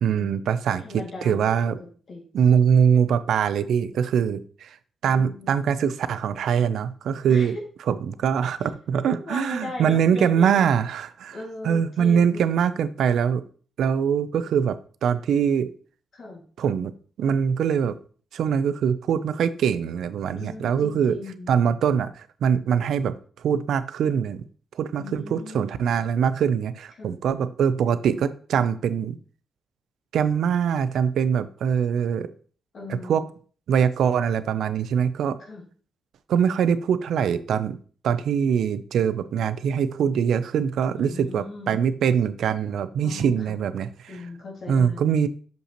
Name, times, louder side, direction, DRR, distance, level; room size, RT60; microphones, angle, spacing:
voice 1, 0.0-1.8 2.3-4.8 5.0-7.6 7.9-11.4 11.6-13.4 13.8-15.7 16.6-16.9 17.2-18.0 18.3-21.2 21.5-23.2 23.4-24.4 24.7-29.2 30.1-32.3 32.9-33.2 33.7-35.4 36.3-37.8 38.0-44.2 44.7-45.3, right 7 dB, 75° right, 14 dB, 0.4 m, -23 dB
voice 2, 0.7-1.6 2.1-2.3 5.1-5.6 7.3-7.5 9.0-10.6 11.3-12.4 16.1-16.4 20.3-21.5 25.0-25.8 27.0-27.2 32.7-33.2 35.4-35.6 40.9-41.8 43.0-43.3 44.1-45.1, left 2 dB, 50° left, -1 dB, 2.0 m, -38 dB
6.5 x 5.3 x 2.9 m, 0.42 s
cardioid pair, 130°, 0 cm